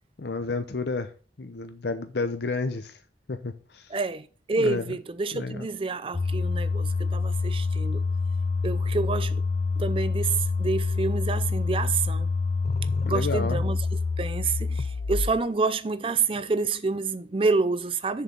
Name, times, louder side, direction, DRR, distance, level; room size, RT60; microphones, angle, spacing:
voice 1, 0.2-1.1 1.4-3.0 3.3-3.9 4.6-5.0 5.3-5.7 13.0-13.6, left 3 dB, 70° left, 0.7 m, -31 dB
voice 2, 3.9-8.0 8.6-9.4 9.8-12.3 13.1-13.8 14.2-18.2, right 4 dB, 30° right, 0.5 m, -28 dB
sound 1, 6.1-15.4, left 4 dB, 40° left, 0.4 m, -27 dB
6.8 x 4.6 x 6.9 m
head